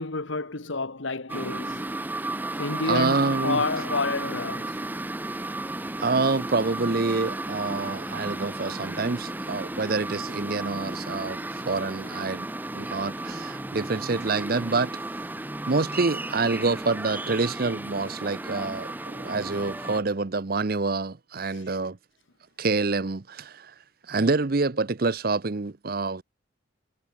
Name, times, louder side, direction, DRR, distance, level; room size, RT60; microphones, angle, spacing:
voice 1, 0.0-1.9 2.6-4.8, left 3 dB, 70° left, 1.6 m, -29 dB
sound 1, 1.3-20.0, right 2 dB, 10° right, 0.6 m, -34 dB
voice 2, 2.9-3.6 5.4-5.5 6.0-12.5 12.7-14.9 15.7-22.0 22.6-23.7 24.1-26.2, right 3 dB, 45° right, 0.7 m, -27 dB
head